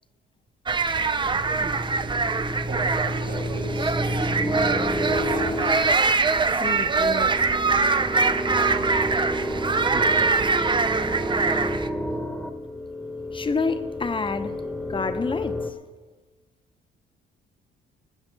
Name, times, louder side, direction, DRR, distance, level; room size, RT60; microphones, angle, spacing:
sound 1, 0.7-11.9, right 4 dB, 25° right, 0.6 m, -23 dB
sound 2, 1.2-15.7, equal, ahead, 1.3 m, -30 dB
voice 1, 2.7-5.9 9.9-11.5, right 3 dB, 50° right, -2 dB, 5.0 m, -38 dB
voice 2, 6.5-7.4 13.3-14.6 14.9-15.8, left 4 dB, 25° left, 9 dB, 0.9 m, -29 dB
19.0 x 7.3 x 5.3 m, 1.3 s
cardioid pair, 90°, 20 cm